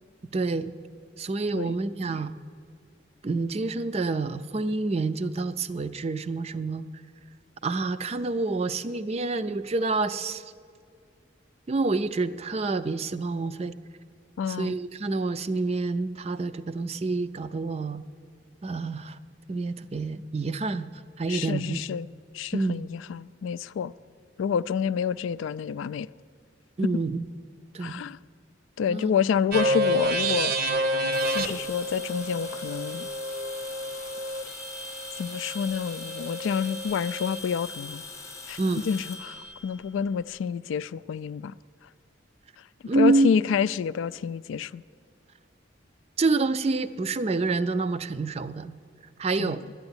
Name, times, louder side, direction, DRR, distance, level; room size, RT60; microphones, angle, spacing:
voice 1, 0.3-0.7 1.2-2.4 3.2-6.9 7.6-10.4 11.7-13.7 14.5-18.0 18.6-19.2 19.5-20.9 21.2-21.8 22.5-22.8 26.8-27.3 27.7-27.9 28.9-29.1 38.6-38.8 42.9-43.4 46.2-48.7 49.2-49.6, right 3 dB, 30° right, 0.4 m, -27 dB
voice 2, 14.4-14.8 21.3-22.1 22.3-23.9 24.4-26.1 27.8-28.2 28.8-30.5 31.3-33.1 35.2-38.0 38.5-41.5 42.9-44.8 49.4-49.6, left 7 dB, 85° left, 0.3 m, -28 dB
sound 1, 29.5-37.4, right 1 dB, 50° right, 0.8 m, -30 dB
sound 2, 31.1-40.4, left 4 dB, 15° left, 0.6 m, -42 dB
11.5 x 8.1 x 9.6 m
head